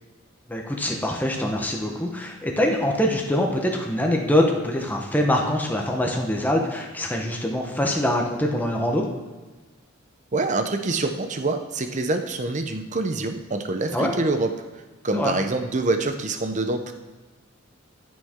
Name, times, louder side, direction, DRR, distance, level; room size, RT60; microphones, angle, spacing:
voice 1, 0.5-9.1 13.9-14.1 15.1-15.4, left 1 dB, 10° left, 1 dB, 1.0 m, -24 dB
voice 2, 10.3-14.5 15.0-16.9, right 2 dB, 35° right, 7 dB, 0.7 m, -25 dB
14.0 x 6.3 x 3.7 m, 1.3 s
head